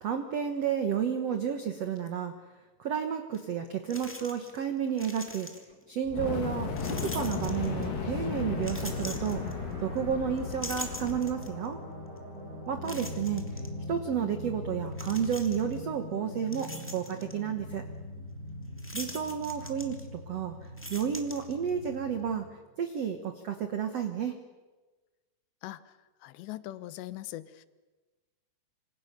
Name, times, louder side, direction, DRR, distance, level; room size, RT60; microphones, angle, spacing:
voice 1, 0.0-2.3 2.8-5.5 5.9-9.4 9.8-11.8 12.7-13.4 13.9-17.8 18.9-20.5 20.9-22.4 22.8-24.3, right 8 dB, 75° right, 7 dB, 1.4 m, -31 dB
sound 1, 3.3-3.4 3.9-4.6 4.9-5.8 6.8-8.0 8.6-10.0 10.4-11.7 12.2-12.3 12.8-13.7 14.9-15.8 16.2-17.4 18.8-20.3 20.6-21.9, left 1 dB, 10° left, 0.5 m, -43 dB
Fire, 6.0-11.3, left 5 dB, 55° left, 3.1 m, -35 dB
sound 2, 7.4-22.5, left 1 dB, 20° right, 4.4 m, -42 dB
voice 2, 25.6-25.9 26.2-27.7, left 15 dB, 80° left, 14 dB, 3.1 m, -41 dB
26.5 x 26.0 x 6.9 m, 1.3 s
omnidirectional pair, 5.1 m